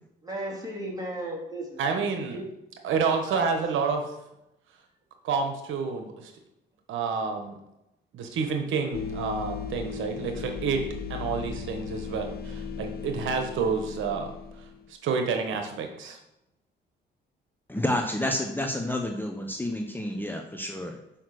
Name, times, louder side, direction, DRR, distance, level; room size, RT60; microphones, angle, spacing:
voice 1, 0.2-2.5 3.2-3.6, right 1 dB, 20° right, -3 dB, 3.4 m, -36 dB
voice 2, 1.8-2.4 2.8-4.0 5.2-6.3 6.9-7.6 8.1-10.8 11.1-14.3 14.6-16.2, right 5 dB, 80° right, 5 dB, 1.1 m, -29 dB
sound 1, 8.9-14.8, left 6 dB, 50° left, 0.7 m, -36 dB
voice 3, 17.7-21.0, left 1 dB, 10° left, 3 dB, 0.8 m, -29 dB
6.4 x 5.6 x 6.3 m, 0.90 s
cardioid pair, 90°, 20 cm